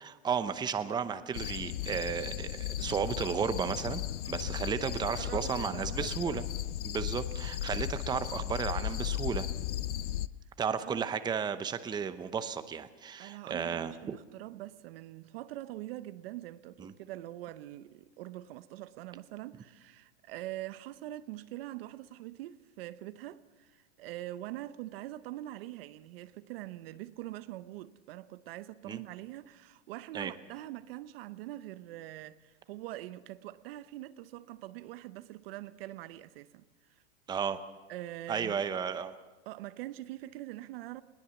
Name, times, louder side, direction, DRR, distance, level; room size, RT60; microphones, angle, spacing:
voice 1, 0.0-4.0 4.3-6.4 6.8-9.5 10.6-14.2 16.8-16.9 28.9-29.0 30.1-30.3 37.3-37.6 38.3-39.1, right 7 dB, 10° right, 0.8 m, -33 dB
sound 1, 1.3-10.3, left 12 dB, 85° left, 0.7 m, -36 dB
voice 2, 5.1-6.4 10.7-11.0 13.2-36.7 37.9-38.6 39.5-41.0, right 15 dB, 60° right, 0.8 m, -44 dB
20.5 x 18.0 x 7.1 m
supercardioid pair, 135°, 34 cm